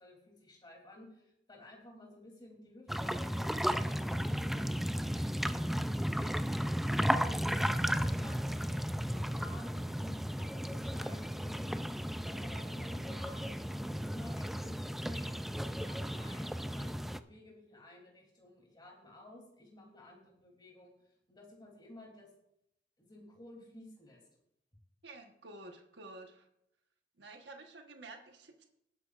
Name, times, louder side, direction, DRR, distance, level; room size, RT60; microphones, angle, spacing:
voice 1, 0.0-6.4 6.9-7.4 7.7-11.5 12.1-15.3 15.7-20.9 21.3-22.3 23.0-24.2, left 1 dB, 25° left, 0 dB, 3.0 m, -54 dB
sound 1, 2.9-17.2, equal, ahead, 0.3 m, -34 dB
voice 2, 25.0-26.5 27.2-28.6, right 2 dB, 70° right, 3 dB, 1.3 m, -51 dB
19.5 x 9.3 x 2.5 m, 0.79 s
head